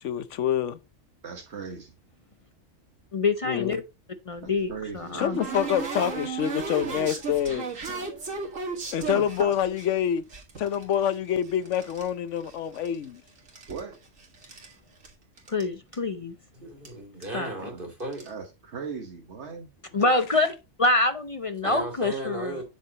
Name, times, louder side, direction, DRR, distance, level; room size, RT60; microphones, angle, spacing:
voice 1, 0.0-0.8 3.4-3.8 5.1-7.7 8.9-10.2 10.6-13.2, left 9 dB, 70° left, 1.0 m, -26 dB
voice 2, 1.2-1.9 4.4-5.3 9.1-9.5 13.7-14.0 17.6-17.9 18.2-19.7, right 5 dB, 60° right, 1.5 m, -38 dB
voice 3, 3.1-3.8 4.3-5.4 15.5-16.3 17.3-17.5 19.9-20.5 20.8-22.6, left 2 dB, 40° left, 0.5 m, -25 dB
sound 1, 4.4-9.9 10.3-12.1 12.4-13.1 13.4-14.7 15.0-15.1 15.4-15.6 15.9-16.0 16.8-16.9 17.2-17.5 18.0-18.3, right 4 dB, 85° right, 2.3 m, -35 dB
voice 4, 16.5-18.2 21.6-22.6, right 1 dB, 45° right, 2.8 m, -35 dB
8.6 x 6.7 x 2.9 m
omnidirectional pair, 1.3 m